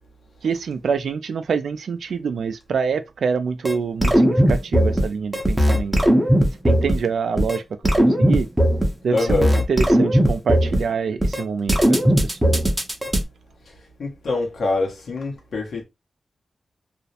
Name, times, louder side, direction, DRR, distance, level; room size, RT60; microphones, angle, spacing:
voice 1, 0.4-5.9 6.6-7.6 8.0-8.5 9.0-12.6, right 5 dB, 85° right, 0.3 m, -26 dB
sound 1, 3.6-3.7 4.0-5.0 5.3-7.0 7.4-7.6 7.8-8.9 9.2-10.8 11.2-11.4 11.7-13.2, equal, 5° right, 0.6 m, -17 dB
voice 2, 9.1-9.6 13.7-13.8 14.0-15.8, left 3 dB, 90° left, 0.8 m, -25 dB
2.4 x 2.0 x 2.6 m
wide cardioid pair, 110°, 0 cm